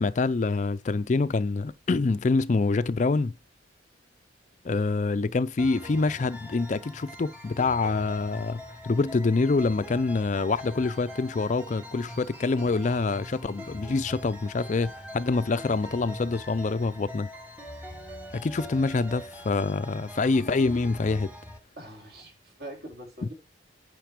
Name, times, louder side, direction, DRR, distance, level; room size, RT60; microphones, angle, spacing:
voice 1, 0.0-3.3 4.6-17.3 18.3-21.3, left 3 dB, 40° left, 0.4 m, -26 dB
sound 1, 5.6-21.6, left 1 dB, 10° right, 1.4 m, -42 dB
voice 2, 21.8-23.3, right 1 dB, 55° right, 3.1 m, -43 dB
9.2 x 5.1 x 5.0 m
head